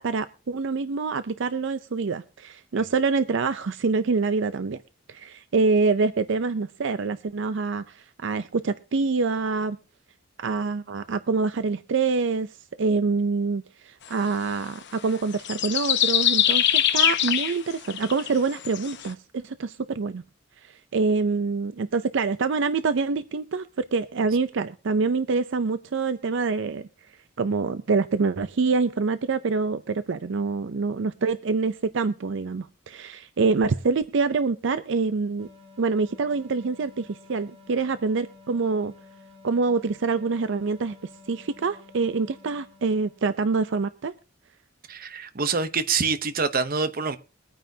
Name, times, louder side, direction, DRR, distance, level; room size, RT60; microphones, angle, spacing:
voice 1, 0.0-4.8 5.1-9.8 10.4-20.2 20.6-26.9 27.4-35.5 35.8-38.9 39.4-41.0 41.3-44.1, right 4 dB, 65° right, 0.5 m, -26 dB
sound 1, 15.3-19.1, left 10 dB, 60° left, 0.9 m, -22 dB
sound 2, 35.4-43.5, left 3 dB, 30° right, 3.2 m, -51 dB
voice 2, 44.9-47.2, right 5 dB, 45° right, 0.8 m, -26 dB
22.5 x 9.2 x 2.7 m
head